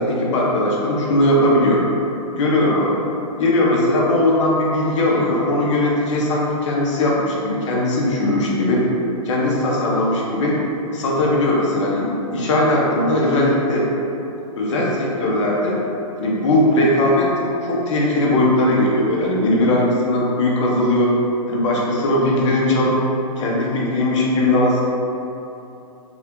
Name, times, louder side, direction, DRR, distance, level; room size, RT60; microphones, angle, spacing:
voice 1, 0.0-1.8 2.3-3.0 3.4-8.8 9.2-10.6 10.9-13.9 14.6-15.8 16.2-17.3 17.7-21.1 21.5-23.0 23.4-24.8, left 1 dB, 50° left, -4 dB, 0.9 m, -19 dB
3.5 x 2.7 x 3.6 m, 2.9 s
hypercardioid pair, 150°, 19 cm